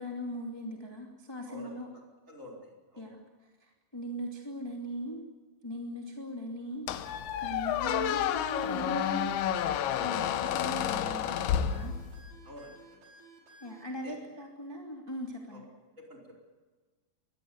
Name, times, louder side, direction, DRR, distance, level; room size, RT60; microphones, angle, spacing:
voice 1, 0.0-1.9 3.0-3.2 3.6-5.2 5.6-6.9 7.4-9.3 10.0-11.9 13.6-15.6, equal, 10° left, 0 dB, 1.9 m, -39 dB
voice 2, 1.5-2.0 2.3-3.1 12.4-13.0 14.0-14.2 15.5-15.6 16.0-16.4, left 1 dB, 20° right, 2 dB, 4.8 m, -49 dB
Squeak, 6.9-12.4, left 10 dB, 80° left, 3.0 m, -30 dB
sound 1, 8.6-13.8, right 2 dB, 90° right, 6.9 m, -55 dB
24.0 x 20.0 x 8.1 m, 1.3 s
omnidirectional pair, 4.5 m